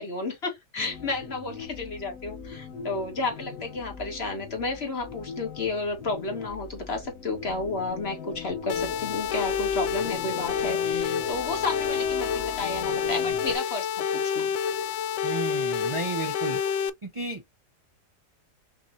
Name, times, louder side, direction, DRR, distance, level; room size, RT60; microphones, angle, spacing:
voice 1, 0.0-14.5, left 3 dB, 40° left, 1.7 m, -32 dB
sound 1, 0.8-13.6, left 6 dB, 65° left, 1.9 m, -40 dB
sound 2, 8.7-16.9, left 7 dB, 80° left, 0.6 m, -28 dB
voice 2, 15.2-16.6 17.0-17.4, right 3 dB, 55° right, 0.3 m, -33 dB
5.9 x 3.1 x 2.6 m
omnidirectional pair, 1.8 m